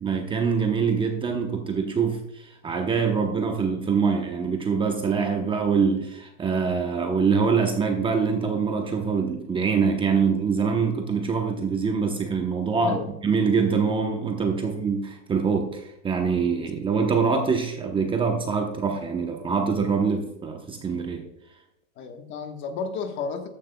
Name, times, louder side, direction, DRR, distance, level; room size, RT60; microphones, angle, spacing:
voice 1, 0.0-21.2, right 5 dB, 10° right, 3 dB, 0.8 m, -24 dB
voice 2, 12.8-13.1 14.6-14.7 22.0-23.5, left 5 dB, 25° left, 6 dB, 1.2 m, -32 dB
14.0 x 10.0 x 2.2 m, 0.85 s
hypercardioid pair, 140°, 42 cm